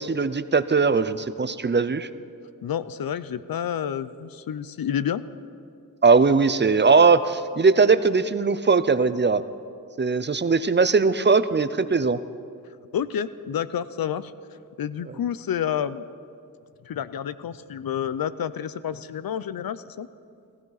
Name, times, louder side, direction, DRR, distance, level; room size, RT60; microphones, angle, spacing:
voice 1, 0.0-2.1 6.0-9.4 10.0-12.2, right 4 dB, 30° right, 13 dB, 0.5 m, -20 dB
voice 2, 2.6-5.2 12.9-14.3 14.8-16.0 16.8-20.1, left 9 dB, 85° left, 14 dB, 0.6 m, -29 dB
18.0 x 15.5 x 4.0 m, 2.4 s
wide cardioid pair, 80°, 35 cm